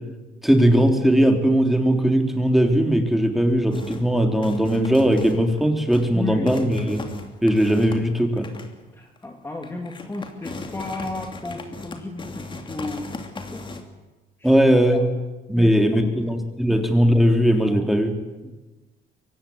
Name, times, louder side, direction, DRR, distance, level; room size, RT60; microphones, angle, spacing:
voice 1, 0.4-7.0 7.4-8.5 14.4-15.0 15.5-18.1, equal, ahead, 4 dB, 3.6 m, -19 dB
sound 1, 3.7-4.1 4.4-5.6 5.9-6.1 6.5-8.8 9.2-9.3 9.6-13.8, left 3 dB, 30° left, 3.0 m, -37 dB
voice 2, 6.1-6.5 8.9-13.1 13.3-13.7 14.4-14.5 14.9-15.0 15.6-16.1 16.7-16.8 17.7-17.9 18.4-18.5, left 2 dB, 15° left, 2 dB, 2.7 m, -33 dB
24.0 x 18.0 x 9.6 m, 1.2 s
cardioid pair, 110°, 17 cm